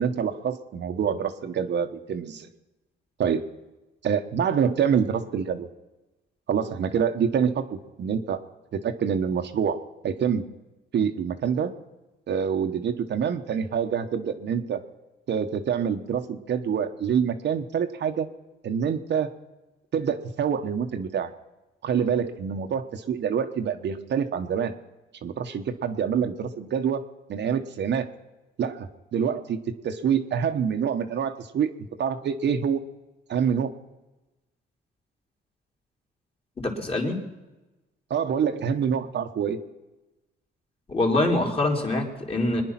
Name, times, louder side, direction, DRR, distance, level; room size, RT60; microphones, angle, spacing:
voice 1, 0.0-2.5 3.2-3.4 4.0-5.7 6.5-8.4 8.7-10.4 10.9-11.7 12.3-14.8 15.3-18.3 18.6-19.3 19.9-21.3 21.8-24.7 25.2-28.1 28.6-31.7 32.0-32.8 33.3-33.7 38.1-39.6, right 7 dB, 60° right, 6 dB, 1.2 m, -26 dB
voice 2, 36.6-37.2 40.9-42.6, left 2 dB, 30° left, 1 dB, 3.4 m, -24 dB
23.0 x 10.0 x 5.9 m, 1.1 s
cardioid pair, 90°, 20 cm